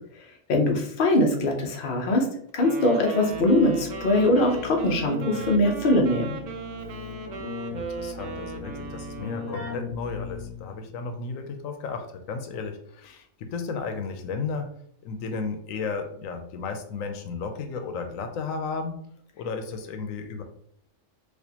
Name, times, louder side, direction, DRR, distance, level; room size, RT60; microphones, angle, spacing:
voice 1, 0.5-2.3 2.5-6.4, left 1 dB, 50° left, 2 dB, 0.8 m, -22 dB
Wind instrument woodwind instrument, 2.6-9.8, right 4 dB, 60° right, 0.5 m, -37 dB
Keyboard (musical), 3.3-10.8, left 4 dB, 15° left, 0.9 m, -39 dB
voice 2, 7.7-14.7 15.0-19.0 19.4-20.4, left 4 dB, 90° left, 6 dB, 1.0 m, -34 dB
4.3 x 2.5 x 2.8 m, 0.66 s
omnidirectional pair, 1.4 m